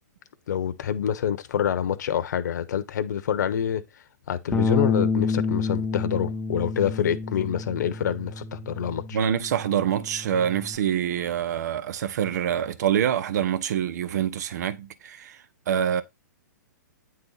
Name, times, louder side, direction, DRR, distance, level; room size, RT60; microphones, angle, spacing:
voice 1, 0.5-3.8 4.3-9.2, left 9 dB, 65° left, 1.0 m, -26 dB
Bass guitar, 4.5-10.8, left 3 dB, 5° left, 0.6 m, -29 dB
voice 2, 9.1-15.4 15.7-16.0, right 9 dB, 60° right, 0.9 m, -25 dB
9.3 x 4.2 x 4.0 m
hypercardioid pair, 135°, 10 cm